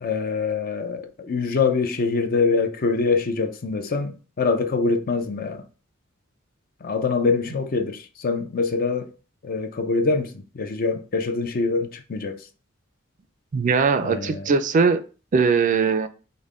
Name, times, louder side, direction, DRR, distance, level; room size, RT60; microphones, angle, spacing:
voice 1, 0.0-5.7 6.8-9.1 9.4-12.5 14.0-14.5, left 4 dB, 45° left, 0.5 m, -24 dB
voice 2, 13.5-15.0 15.3-16.1, right 5 dB, 40° right, 0.4 m, -20 dB
5.3 x 2.2 x 3.6 m
head